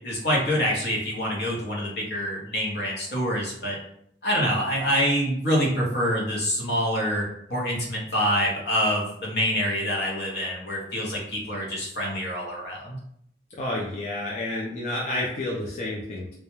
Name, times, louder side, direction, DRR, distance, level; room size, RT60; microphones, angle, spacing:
voice 1, 0.0-3.8 4.2-13.0, equal, 70° left, -2 dB, 0.7 m, -26 dB
voice 2, 13.6-16.3, left 1 dB, 40° left, -4 dB, 0.4 m, -30 dB
2.2 x 2.0 x 3.0 m, 0.69 s
head